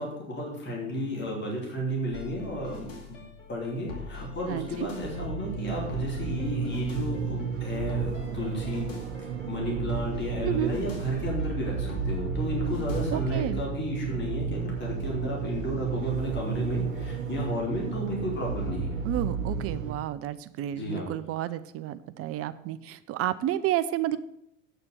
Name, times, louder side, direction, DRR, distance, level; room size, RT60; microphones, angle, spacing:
voice 1, 0.0-3.2 3.5-8.9 9.5-19.0 20.7-21.0, equal, 25° left, -2 dB, 3.6 m, -33 dB
sound 1, 2.1-13.4, left 5 dB, 70° left, 2.4 m, -43 dB
voice 2, 4.5-4.9 10.4-10.7 13.1-13.6 19.0-24.2, right 13 dB, 35° right, 14 dB, 0.6 m, -31 dB
sound 2, 5.0-19.9, right 6 dB, 75° right, 1.1 m, -32 dB
8.9 x 6.9 x 6.8 m, 0.77 s
figure-of-eight pair, 75°, 40 cm